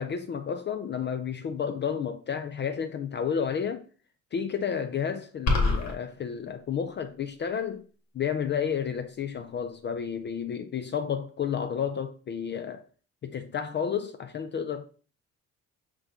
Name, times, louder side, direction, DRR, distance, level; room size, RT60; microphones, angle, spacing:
voice 1, 0.0-3.8 4.3-7.8 8.1-12.8 13.2-14.9, left 7 dB, 40° left, 0.4 m, -31 dB
sound 1, 5.5-5.9, left 3 dB, 65° left, 1.3 m, -23 dB
5.8 x 2.2 x 3.6 m
cardioid pair, 90°, 30 cm